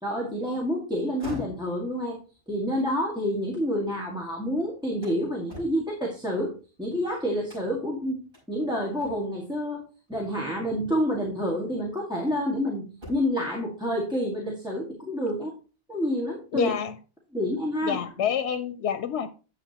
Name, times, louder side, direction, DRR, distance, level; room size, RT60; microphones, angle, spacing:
voice 1, 0.0-2.2 2.5-8.2 8.5-15.5 15.9-16.7 17.3-18.0, equal, 5° right, 1.6 m, -28 dB
sound 1, 1.0-4.1 4.5-6.9 7.4-7.9 8.3-8.5 9.0-9.5 10.7-10.9 11.5-12.6 12.9-13.5, left 1 dB, 55° right, 6.1 m, -46 dB
voice 2, 16.5-17.0 17.8-19.3, left 8 dB, 90° left, 0.9 m, -28 dB
9.7 x 7.7 x 2.8 m
omnidirectional pair, 1.1 m